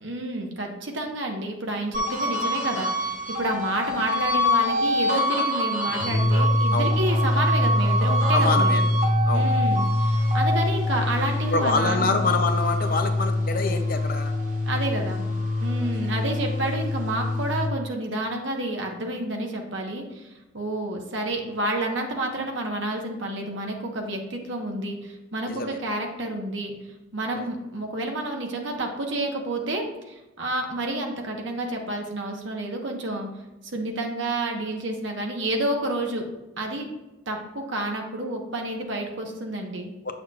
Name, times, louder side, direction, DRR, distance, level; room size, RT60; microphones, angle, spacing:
voice 1, 0.0-8.8 9.3-12.2 14.7-15.2 15.6-26.7 27.1-33.3 33.7-36.2 36.6-36.9 37.3-39.9, right 1 dB, 70° right, 2 dB, 1.1 m, -30 dB
sound 1, 1.9-14.6 15.0-16.7, equal, 40° right, 1.0 m, -27 dB
sound 2, 5.9-17.8, left 2 dB, 90° left, 0.8 m, -24 dB
voice 2, 8.3-8.9 9.3-9.6 11.5-14.3 25.5-25.8 27.3-27.5 40.0-40.1, left 3 dB, 45° left, 7 dB, 0.5 m, -26 dB
7.7 x 6.4 x 2.4 m, 1.1 s
head